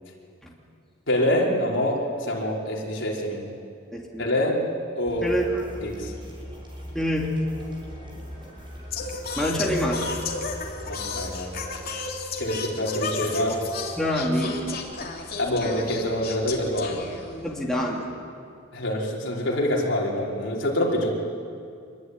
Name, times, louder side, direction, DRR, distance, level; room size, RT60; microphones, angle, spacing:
voice 1, 1.1-3.5 4.2-4.6 4.9-5.3 5.8-6.1 10.9-11.5 12.4-13.6 15.4-17.0 18.7-21.1, left 1 dB, 60° left, -3 dB, 5.1 m, -26 dB
voice 2, 3.9-4.2 5.2-5.6 6.9-7.4 9.4-9.9 14.0-14.7 17.4-18.1, equal, ahead, -3 dB, 2.9 m, -26 dB
sound 1, 5.1-11.9, equal, 25° right, 6.4 m, -40 dB
Singing, 8.9-17.6, left 4 dB, 45° left, 3.3 m, -33 dB
26.0 x 22.5 x 9.8 m, 2.4 s
head